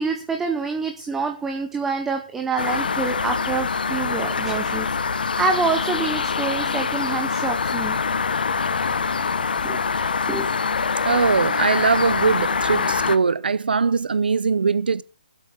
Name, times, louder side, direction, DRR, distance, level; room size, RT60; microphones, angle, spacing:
voice 1, 0.0-8.0 9.2-9.3 9.6-9.8 10.3-10.5, right 4 dB, 5° right, 0.8 m, -26 dB
sound 1, 2.6-13.2, left 5 dB, 70° left, 1.1 m, -24 dB
voice 2, 11.0-15.0, right 5 dB, 80° right, 0.8 m, -21 dB
16.0 x 7.9 x 5.0 m
hypercardioid pair, 170°, 5 cm